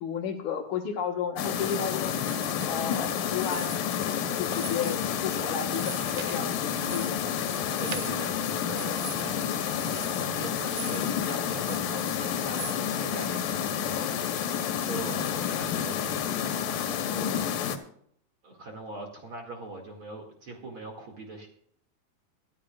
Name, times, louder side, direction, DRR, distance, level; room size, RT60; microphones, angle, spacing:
voice 1, 0.0-2.1 2.6-7.4, left 7 dB, 65° left, 3 dB, 2.6 m, -33 dB
sound 1, 1.4-17.8, left 8 dB, 85° left, 3.0 m, -30 dB
sound 2, 2.0-2.7 3.3-4.1 4.4-5.1 5.4-11.2 11.5-12.8, right 10 dB, 80° right, 2.6 m, -43 dB
voice 2, 7.8-9.5 9.8-17.4 18.4-21.5, right 2 dB, 40° right, 1 dB, 2.5 m, -42 dB
23.5 x 12.0 x 2.4 m, 0.65 s
omnidirectional pair, 4.0 m